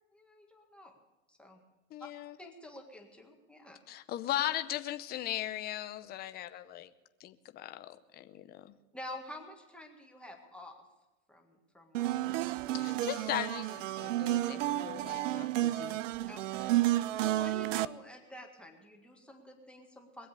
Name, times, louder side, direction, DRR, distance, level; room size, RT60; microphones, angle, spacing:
voice 1, 0.1-1.0 1.3-1.6 2.4-3.8 8.9-10.8 11.3-12.3 16.3-20.3, left 1 dB, 5° left, 1 dB, 1.7 m, -49 dB
voice 2, 1.9-2.4 3.9-6.9 7.2-8.7 12.7-16.0, left 13 dB, 25° left, 10 dB, 0.7 m, -38 dB
sound 1, 11.9-17.9, right 15 dB, 75° right, 0.6 m, -31 dB
21.5 x 7.9 x 6.7 m, 1.1 s
supercardioid pair, 130°, 38 cm